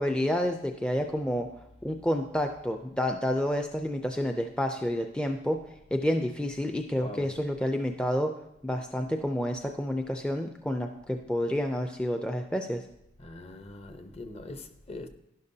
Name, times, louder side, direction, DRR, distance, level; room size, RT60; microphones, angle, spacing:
voice 1, 0.0-1.5 1.8-5.6 5.9-8.3 8.6-12.8, left 1 dB, 5° left, 0.4 m, -29 dB
voice 2, 6.9-7.3 13.2-15.1, left 2 dB, 35° left, 0.7 m, -42 dB
12.0 x 11.0 x 2.8 m
head